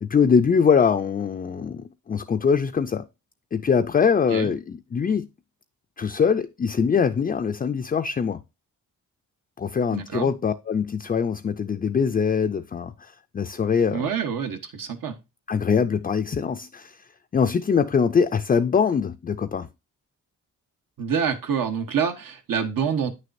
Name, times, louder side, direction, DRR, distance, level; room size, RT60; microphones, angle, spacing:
voice 1, 0.0-3.0 3.5-5.3 6.0-8.4 9.6-14.1 15.5-17.0 17.3-19.7, left 6 dB, 25° left, 0.4 m, -23 dB
voice 2, 9.9-10.3 13.9-15.2 21.0-23.1, right 7 dB, 75° right, 1.2 m, -26 dB
9.1 x 6.5 x 2.6 m
wide cardioid pair, 110°, 34 cm